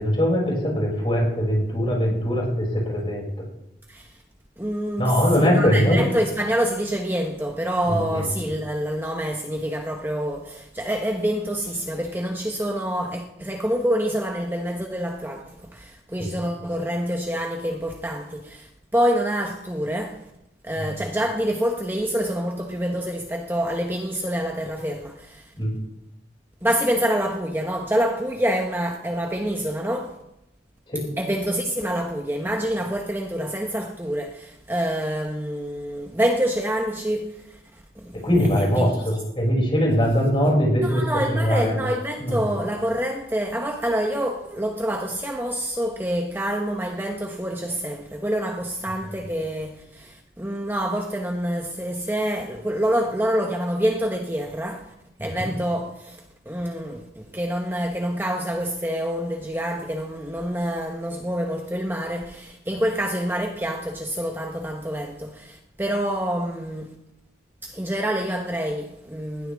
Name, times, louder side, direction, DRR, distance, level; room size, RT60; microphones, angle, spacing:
voice 1, 0.0-3.3 5.0-6.0 7.9-8.3 16.2-16.3 20.8-21.0 25.5-25.7 30.9-31.0 38.1-41.0 41.3-41.8 42.2-42.4 55.2-55.5, equal, 30° left, 6.6 m, -22 dB
voice 2, 4.6-20.3 20.6-25.5 26.6-30.2 31.2-38.3 38.6-38.9 40.8-54.9 55.2-67.0 67.6-69.5, equal, 10° right, 1.1 m, -27 dB
20.0 x 16.0 x 3.6 m
head